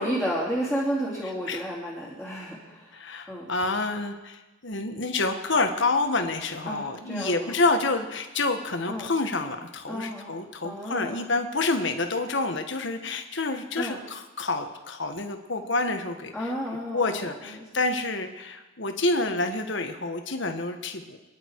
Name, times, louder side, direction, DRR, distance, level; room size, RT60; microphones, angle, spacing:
voice 1, 0.0-3.0 3.3-3.5 6.6-7.6 8.9-9.1 9.9-11.2 13.8-14.0 16.3-17.6, equal, ahead, -7 dB, 2.9 m, -32 dB
voice 2, 2.9-16.5 16.9-21.2, left 3 dB, 60° left, 6 dB, 1.6 m, -28 dB
27.5 x 11.0 x 4.8 m, 1.1 s
head